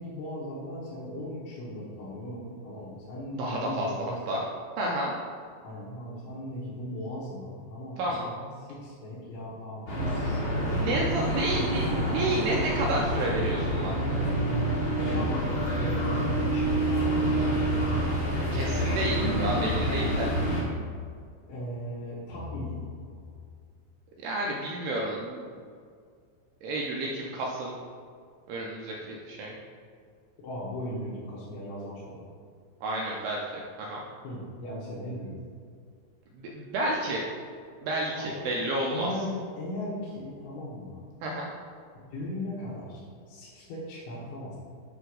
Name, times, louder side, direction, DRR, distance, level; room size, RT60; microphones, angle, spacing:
voice 1, 0.0-4.2 5.6-11.2 15.1-18.1 21.5-22.8 30.4-32.2 34.2-35.3 38.2-38.6 38.9-41.0 42.0-44.6, left 1 dB, 90° left, -8 dB, 3.7 m, -37 dB
voice 2, 3.4-4.4 4.8-5.1 8.0-8.3 10.7-14.0 18.5-20.3 24.2-25.4 26.6-27.8 28.5-29.6 32.8-33.4 33.8-34.0 36.4-37.2 37.8-39.1 41.2-41.5, right 1 dB, 80° right, -2 dB, 2.4 m, -30 dB
sound 1, 9.9-20.6, right 1 dB, 60° left, 1.4 m, -27 dB
sound 2, 19.2-20.8 22.3-23.6, equal, 65° right, 2.9 m, -39 dB
9.0 x 3.5 x 6.4 m, 2.1 s
omnidirectional pair, 5.3 m